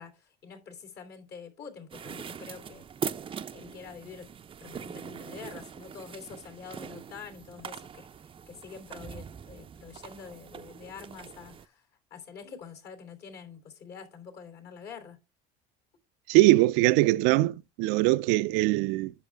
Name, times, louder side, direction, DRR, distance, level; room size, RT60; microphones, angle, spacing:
voice 1, 0.0-2.8 3.5-4.3 4.6-8.1 8.5-11.8 12.1-15.2, left 6 dB, 55° left, 3.3 m, -46 dB
sound 1, 1.9-11.6, right 7 dB, 25° right, 0.5 m, -42 dB
voice 2, 16.3-19.1, right 18 dB, 75° right, 0.5 m, -22 dB
10.0 x 6.6 x 3.4 m
supercardioid pair, 95°, 20 cm